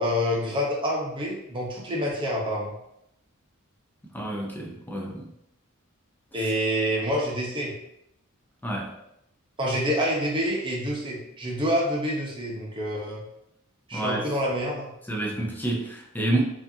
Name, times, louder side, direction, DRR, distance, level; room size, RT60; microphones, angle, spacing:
voice 1, 0.0-2.7 6.3-7.7 9.6-13.2 13.9-14.9, equal, 25° right, -2 dB, 0.9 m, -27 dB
voice 2, 4.1-5.3 6.4-6.5 8.6-8.9 13.9-14.3 15.1-16.4, right 1 dB, 10° left, -1 dB, 0.6 m, -29 dB
4.8 x 2.7 x 2.7 m, 0.78 s
head